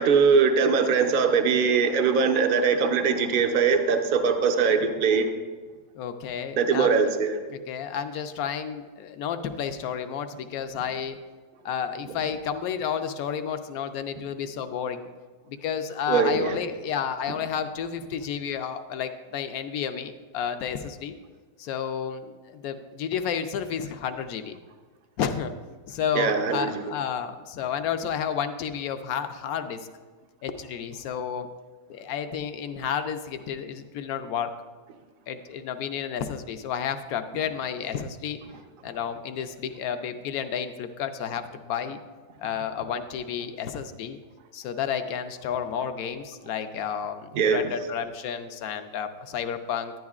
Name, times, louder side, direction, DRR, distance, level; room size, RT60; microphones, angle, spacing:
voice 1, 0.0-5.3 6.6-7.4 16.1-16.6 26.1-26.9 47.3-47.7, right 5 dB, 60° right, 5 dB, 0.5 m, -22 dB
voice 2, 5.9-7.0 7.5-11.2 11.6-15.1 15.5-21.1 21.6-24.6 25.2-25.5 25.9-29.9 30.4-31.5 31.9-34.5 35.3-38.4 38.8-42.0 42.4-44.2 44.5-49.9, left 7 dB, 70° left, 8 dB, 1.0 m, -31 dB
10.5 x 10.5 x 2.4 m, 1.4 s
omnidirectional pair, 1.7 m